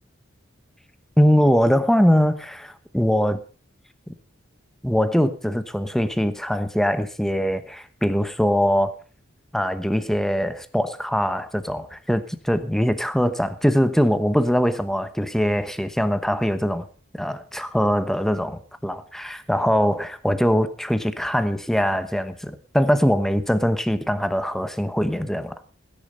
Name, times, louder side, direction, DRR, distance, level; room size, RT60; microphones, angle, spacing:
voice 1, 1.2-3.4 4.8-8.9 9.5-16.8 17.1-25.5, equal, ahead, 1.1 m, -22 dB
16.5 x 10.5 x 5.4 m
head